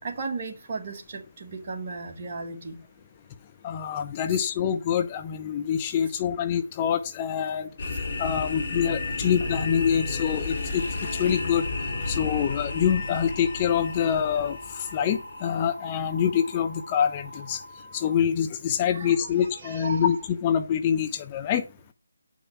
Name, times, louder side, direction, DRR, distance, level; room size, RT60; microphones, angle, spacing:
voice 1, 0.0-2.8 12.0-12.2 18.9-20.1, right 4 dB, 40° right, 1.8 m, -36 dB
voice 2, 3.6-7.7 8.2-10.8 11.2-11.6 12.1-17.6 17.9-21.6, left 8 dB, 25° left, 0.6 m, -25 dB
sound 1, 7.8-15.7, left 3 dB, 40° left, 3.0 m, -32 dB
sound 2, 10.8-18.1, equal, 75° left, 1.8 m, -43 dB
8.5 x 5.5 x 4.6 m
figure-of-eight pair, 155°, 0 cm